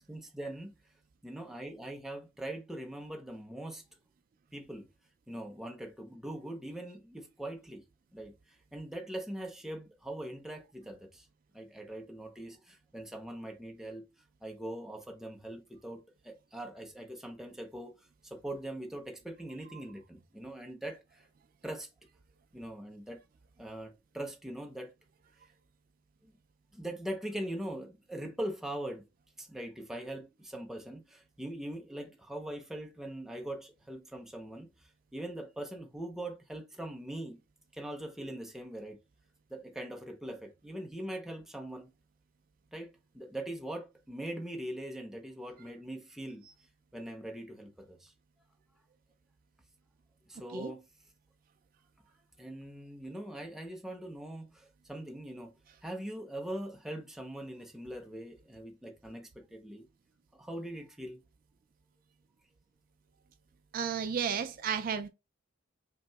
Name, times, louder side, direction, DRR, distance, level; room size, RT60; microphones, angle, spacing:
voice 1, 0.1-0.8 1.2-3.8 4.5-4.9 5.3-7.8 8.1-11.3 11.5-14.0 14.4-21.3 21.6-21.9 22.5-23.2 23.6-24.9 26.2-26.3 26.7-29.0 29.4-37.4 37.7-39.0 39.5-41.9 42.7-46.5 46.9-48.1 50.3-50.9 52.4-55.5 55.8-59.9 60.3-61.2, right 1 dB, ahead, 0.6 m, -42 dB
voice 2, 63.7-65.1, right 7 dB, 45° right, 0.3 m, -32 dB
5.3 x 2.9 x 2.3 m
head